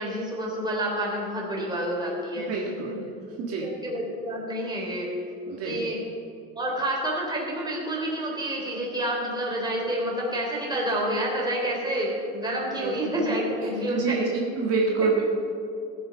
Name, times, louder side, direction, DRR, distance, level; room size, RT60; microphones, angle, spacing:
voice 1, 0.0-3.0 3.6-5.1 5.6-6.0 6.6-14.5 15.0-15.1, right 1 dB, 15° right, -3 dB, 3.6 m, -29 dB
voice 2, 2.4-3.1 3.4-3.8 5.5-5.9 12.8-13.0 13.9-15.2, right 5 dB, 55° right, -2 dB, 1.7 m, -27 dB
16.5 x 7.6 x 5.3 m, 2.5 s
cardioid pair, 120°, 29 cm